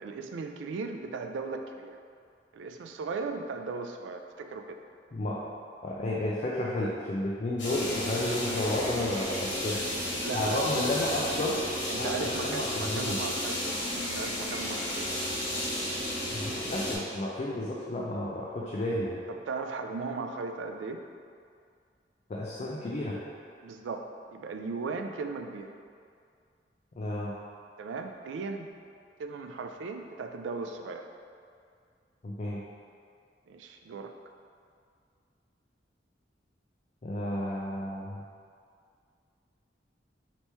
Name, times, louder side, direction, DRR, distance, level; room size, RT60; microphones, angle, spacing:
voice 1, 0.0-2.0 2.5-4.8 9.7-9.9 10.2-10.9 11.9-13.8 14.1-15.2 19.3-21.0 23.6-25.8 27.8-28.7 29.2-31.1 33.5-34.1, right 4 dB, 85° right, 5 dB, 0.3 m, -37 dB
voice 2, 5.1-5.4 5.8-9.8 10.3-11.6 12.0-13.2 16.3-19.2 22.3-23.2 27.0-27.3 32.2-32.6 37.0-38.2, left 1 dB, 40° left, -5 dB, 0.4 m, -32 dB
sound 1, 7.6-16.9, left 1 dB, 90° left, 1.3 m, -33 dB
3.3 x 3.0 x 4.2 m, 2.3 s
head